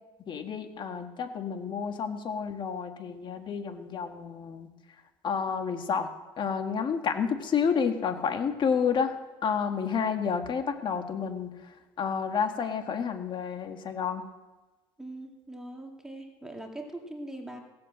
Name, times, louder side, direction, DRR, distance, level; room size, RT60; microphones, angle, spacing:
voice 1, 0.3-4.7 5.2-6.1 6.4-9.1 9.4-11.5 12.0-14.2, left 6 dB, 40° left, 7 dB, 1.6 m, -30 dB
voice 2, 15.0-17.6, right 1 dB, 5° right, 2 dB, 2.4 m, -41 dB
16.5 x 7.9 x 7.5 m, 1.2 s
supercardioid pair, 95°, 12 cm